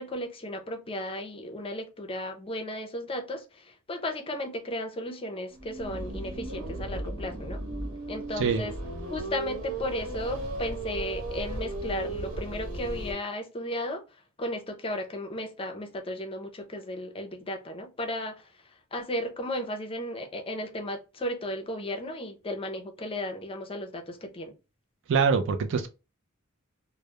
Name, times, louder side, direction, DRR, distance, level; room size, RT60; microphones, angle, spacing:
voice 1, 0.0-7.6 8.1-8.7 9.1-14.0 14.4-18.5 18.9-24.5, left 1 dB, 25° left, 0.5 m, -35 dB
sound 1, 5.5-13.1, right 2 dB, 80° right, 1.1 m, -36 dB
voice 2, 25.1-25.9, right 5 dB, 60° right, 0.3 m, -24 dB
2.2 x 2.0 x 2.8 m
head